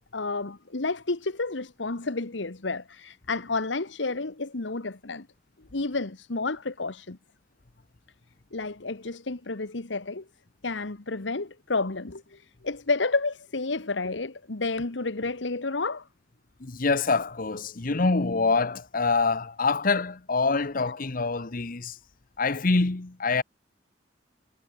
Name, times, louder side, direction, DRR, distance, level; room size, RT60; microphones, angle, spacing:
voice 1, 0.1-5.3 5.7-7.2 8.5-10.2 10.6-16.0, left 3 dB, 80° left, 1.4 m, -30 dB
voice 2, 16.6-22.0 22.4-23.4, left 3 dB, 50° left, 1.0 m, -25 dB
head